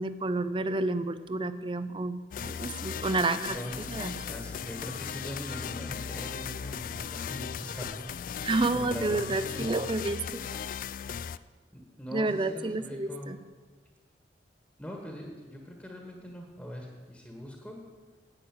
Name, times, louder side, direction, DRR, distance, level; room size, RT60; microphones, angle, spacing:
voice 1, 0.0-3.6 3.9-4.1 8.4-10.5 12.1-13.4, right 2 dB, 30° right, 13 dB, 0.6 m, -30 dB
sound 1, 2.3-11.4, left 7 dB, 50° left, 0.3 m, -37 dB
voice 2, 3.5-9.9 11.7-13.3 14.8-17.8, equal, 5° left, 1 dB, 1.6 m, -41 dB
10.5 x 9.0 x 8.7 m, 1.4 s
head